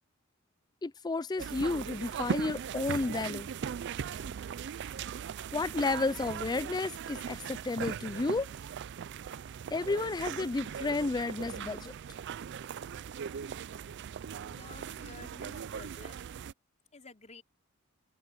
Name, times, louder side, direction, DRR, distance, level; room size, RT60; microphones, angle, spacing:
voice 1, 0.8-3.5 5.5-8.5 9.7-11.9, left 3 dB, 20° left, 0.4 m, -32 dB
sound 1, 1.4-16.5, right 7 dB, 55° right, 0.4 m, -39 dB
voice 2, 14.4-16.2 16.9-17.4, left 3 dB, 35° left, 4.8 m, -51 dB
open air
head